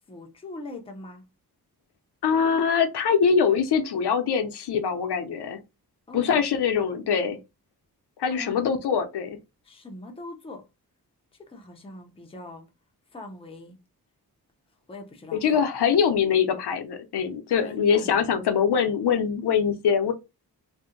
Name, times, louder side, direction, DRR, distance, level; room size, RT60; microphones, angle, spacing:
voice 1, 0.1-1.2 6.1-6.5 8.3-8.7 9.6-10.6 11.5-12.7 13.1-13.8 14.9-15.6 17.6-18.4, left 2 dB, 15° left, 0.5 m, -41 dB
voice 2, 2.2-5.6 6.1-7.4 8.2-9.4 15.3-20.1, left 7 dB, 80° left, 0.6 m, -23 dB
2.6 x 2.1 x 3.7 m
wide cardioid pair, 180°, 39 cm